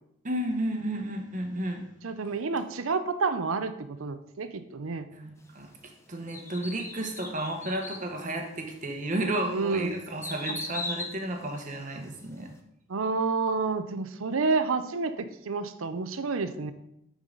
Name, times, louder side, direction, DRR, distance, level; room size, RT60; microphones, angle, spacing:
voice 1, 0.2-1.9 5.1-12.5, right 1 dB, 40° right, 3 dB, 1.1 m, -32 dB
voice 2, 2.0-5.1 9.5-10.0 10.5-10.6 12.9-16.7, right 4 dB, 85° right, 10 dB, 0.6 m, -29 dB
sound 1, 6.3-8.1 8.7-8.8 9.3-12.2 12.5-12.6, left 2 dB, 15° left, 0.6 m, -38 dB
9.2 x 4.8 x 3.9 m, 0.80 s
head